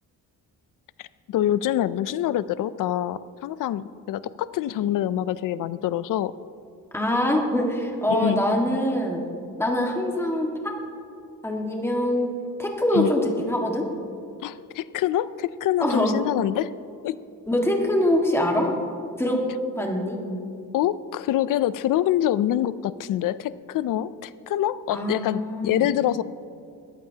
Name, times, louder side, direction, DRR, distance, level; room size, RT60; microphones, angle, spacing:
voice 1, 1.0-6.3 8.1-8.4 12.9-13.1 14.4-16.7 17.0-17.2 20.7-26.2, left 12 dB, 70° left, 16 dB, 0.5 m, -25 dB
voice 2, 6.9-9.2 9.6-10.8 11.4-12.3 12.6-13.8 15.8-16.2 17.5-18.7 19.2-19.4 19.7-20.2 24.9-25.9, left 1 dB, 5° left, 0 dB, 1.7 m, -24 dB
20.0 x 14.5 x 2.8 m, 2.5 s
cardioid pair, 145°, 33 cm